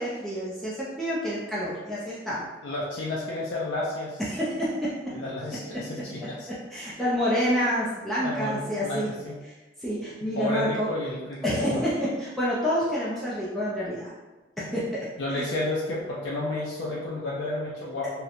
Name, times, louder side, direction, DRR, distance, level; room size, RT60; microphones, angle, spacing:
voice 1, 0.0-2.5 4.2-4.9 6.7-9.1 9.8-10.9 11.4-11.9 12.2-14.1 14.6-15.1 15.3-15.5, equal, ahead, -9 dB, 0.4 m, -28 dB
voice 2, 2.6-4.2 5.1-6.5 8.2-9.4 10.4-11.8 15.2-18.2, left 2 dB, 80° left, -6 dB, 0.4 m, -31 dB
2.8 x 2.1 x 2.4 m, 1.1 s
head